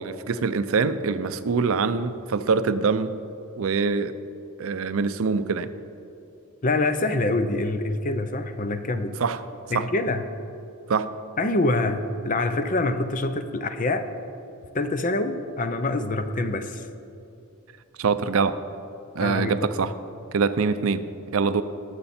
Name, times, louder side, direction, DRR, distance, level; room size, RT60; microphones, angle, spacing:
voice 1, 0.0-3.1 3.6-4.1 4.6-5.7 9.2-9.4 9.7-9.9 10.9-11.1 18.0-18.6 19.1-19.9 20.3-21.1 21.3-21.6, right 5 dB, 70° right, 12 dB, 0.5 m, -24 dB
voice 2, 6.6-9.1 9.7-10.2 11.4-14.1 14.7-16.9 19.2-19.6, left 2 dB, 35° left, 9 dB, 0.6 m, -25 dB
19.0 x 6.7 x 4.3 m, 2.7 s
head